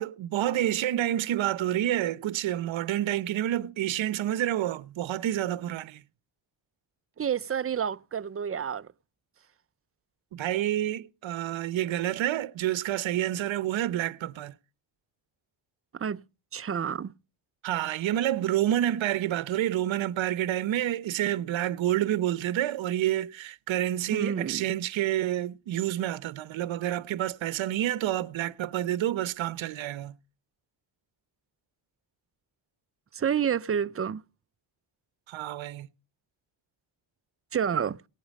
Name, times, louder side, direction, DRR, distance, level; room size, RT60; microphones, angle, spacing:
voice 1, 0.0-6.0 10.3-14.6 17.6-30.2 35.3-35.9, right 12 dB, 75° right, 0.9 m, -28 dB
voice 2, 7.2-8.9 16.0-16.2 16.5-17.1 24.1-24.7 33.1-34.2 37.5-38.0, right 8 dB, 30° right, 0.7 m, -29 dB
18.5 x 8.6 x 5.3 m
cardioid pair, 80°, 47 cm